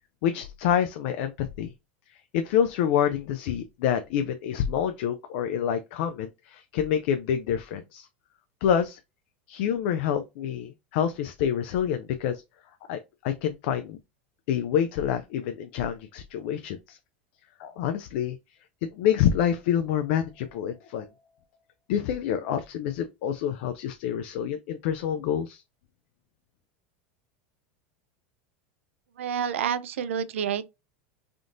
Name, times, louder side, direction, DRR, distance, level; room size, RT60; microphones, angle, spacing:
voice 1, 0.2-1.7 2.1-8.1 8.6-9.0 9.5-12.4 12.9-14.0 14.5-17.0 17.6-18.4 18.9-21.1 21.9-25.6, left 9 dB, 65° left, 0.4 m, -27 dB
voice 2, 29.2-30.7, right 8 dB, 90° right, 0.4 m, -28 dB
3.5 x 2.4 x 2.5 m
hypercardioid pair, 105°, 7 cm